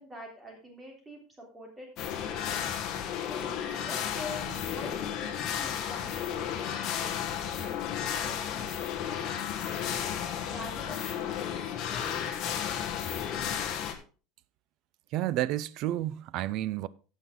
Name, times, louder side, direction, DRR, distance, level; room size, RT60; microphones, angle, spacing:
voice 1, 0.0-2.7 3.2-9.9 10.4-12.1, left 1 dB, 10° right, 3.3 m, -46 dB
sound 1, 2.0-13.9, left 9 dB, 40° left, 1.6 m, -33 dB
voice 2, 15.1-16.9, right 14 dB, 45° right, 0.5 m, -30 dB
14.5 x 6.3 x 3.8 m
cardioid pair, 165°, 0 cm